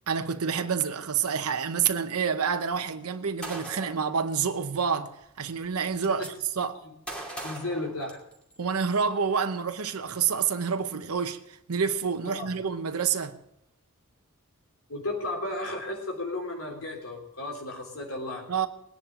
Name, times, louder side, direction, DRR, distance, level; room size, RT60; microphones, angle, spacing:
voice 1, 0.1-6.3 6.6-6.8 8.6-13.4 18.5-18.7, right 6 dB, 85° right, 0.8 m, -28 dB
Gunshot gunfire, 3.4-4.1 5.2-5.3 5.6-6.3 7.1-8.6, right 1 dB, 5° left, 2.5 m, -39 dB
voice 2, 7.4-8.2 12.3-12.5 14.9-18.4, left 2 dB, 70° left, 3.2 m, -34 dB
21.0 x 10.0 x 3.7 m
head